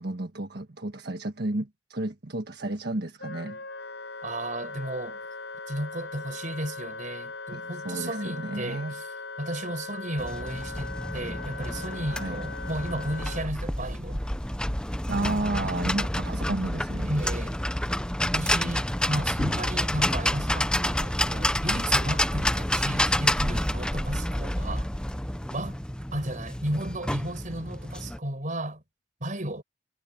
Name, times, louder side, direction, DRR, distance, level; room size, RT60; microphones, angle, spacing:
voice 1, 0.0-3.6 7.5-8.9 12.1-12.4 15.1-17.1, right 2 dB, 65° right, 1.5 m, -32 dB
Wind instrument woodwind instrument, 3.2-13.5, left 4 dB, 70° left, 6.8 m, -39 dB
voice 2, 4.2-5.2 5.7-9.0 9.4-14.2 15.1-15.4 15.6-15.9 17.1-17.6 18.3-24.9 25.5-25.8 26.1-28.8 29.2-29.6, right 1 dB, 45° right, 6.0 m, -34 dB
sound 1, 10.2-28.2, left 1 dB, 5° left, 0.8 m, -29 dB
head